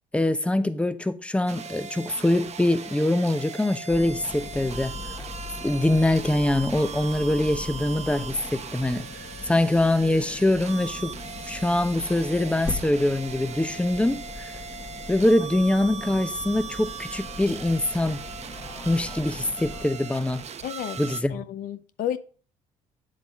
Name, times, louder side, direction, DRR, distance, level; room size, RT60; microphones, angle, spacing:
voice 1, 0.1-4.9 5.6-9.1 9.5-11.1 11.5-14.5 15.1-18.2 18.9-20.4 21.0-21.4, left 1 dB, 10° left, 0.9 m, -24 dB
sound 1, 1.5-21.2, right 6 dB, 45° right, 1.0 m, -39 dB
sound 2, 3.9-19.9, left 3 dB, 25° left, 1.4 m, -40 dB
voice 2, 20.6-21.0 21.3-22.2, left 10 dB, 65° left, 0.6 m, -31 dB
8.5 x 7.5 x 3.6 m
supercardioid pair, 70°, 15 cm